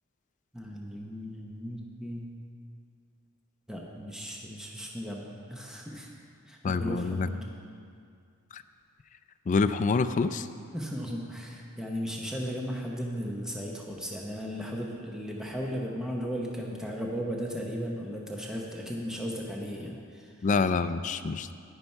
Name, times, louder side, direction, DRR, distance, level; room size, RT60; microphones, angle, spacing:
voice 1, 0.5-2.3 3.7-6.1 6.5-7.4 10.7-20.5, equal, 5° right, -2 dB, 0.9 m, -36 dB
voice 2, 6.6-7.3 8.5-8.6 9.5-10.5 20.4-21.5, left 4 dB, 35° left, 10 dB, 0.3 m, -26 dB
11.0 x 10.0 x 4.5 m, 2.3 s
head